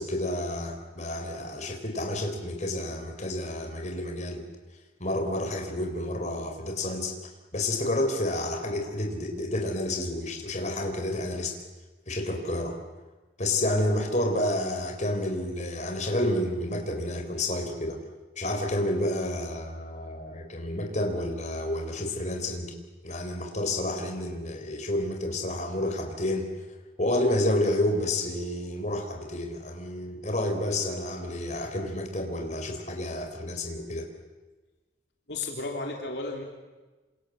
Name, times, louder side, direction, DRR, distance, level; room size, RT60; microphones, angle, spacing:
voice 1, 0.0-4.4 5.0-7.1 7.5-11.6 12.1-12.8 13.4-18.0 18.4-22.7 23.0-26.5 27.0-34.1, left 1 dB, 40° left, 4 dB, 4.3 m, -30 dB
voice 2, 35.3-36.4, left 3 dB, 65° left, 1 dB, 3.3 m, -33 dB
28.0 x 27.0 x 7.7 m, 1.2 s
head